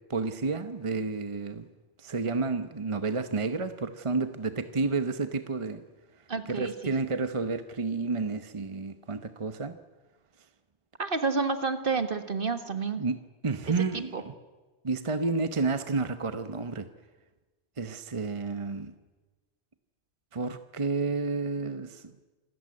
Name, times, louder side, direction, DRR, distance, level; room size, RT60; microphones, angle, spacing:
voice 1, 0.1-1.7 2.0-5.8 6.5-9.7 13.0-13.2 13.4-14.3 14.8-16.9 17.8-18.9 20.3-22.1, right 4 dB, 30° right, 10 dB, 1.0 m, -30 dB
voice 2, 6.3-6.7 11.0-13.0 13.7-14.2, right 4 dB, 50° right, 9 dB, 1.8 m, -30 dB
27.0 x 14.5 x 9.6 m, 1.3 s
omnidirectional pair, 1.1 m